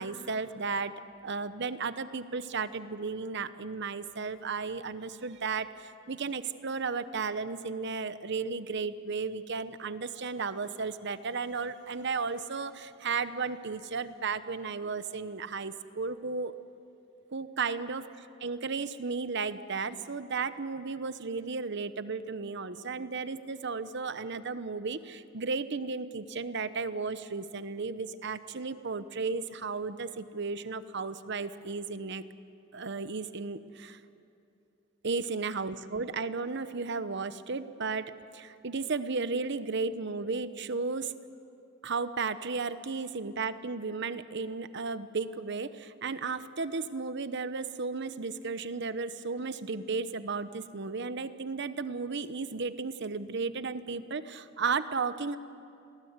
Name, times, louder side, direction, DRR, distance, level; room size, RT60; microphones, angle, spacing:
voice 1, 0.0-16.5 17.3-18.0 18.4-32.2 32.7-34.0 35.0-41.1 41.8-55.4, right 4 dB, 60° right, 13 dB, 1.0 m, -34 dB
30.0 x 22.5 x 8.2 m, 2.7 s
head